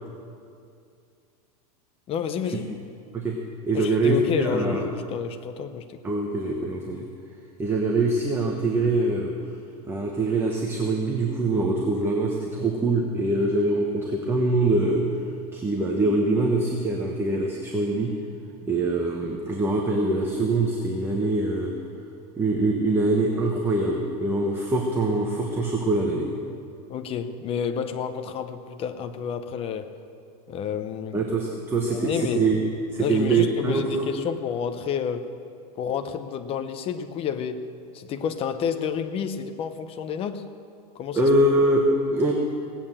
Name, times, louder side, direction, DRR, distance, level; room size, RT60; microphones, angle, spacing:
voice 1, 2.1-2.7 3.7-6.0 26.9-29.9 30.5-31.2 31.8-32.5 33.0-35.3 35.8-37.7 37.9-40.4 40.9-41.3, left 7 dB, 30° left, 8 dB, 0.9 m, -30 dB
voice 2, 3.7-4.9 6.0-7.1 7.6-9.3 9.9-15.1 15.5-18.1 18.7-21.7 22.4-26.3 31.1-34.1 41.1-42.3, right 2 dB, 10° right, 0 dB, 1.2 m, -24 dB
17.5 x 8.8 x 7.4 m, 2.4 s
supercardioid pair, 150°, 20 cm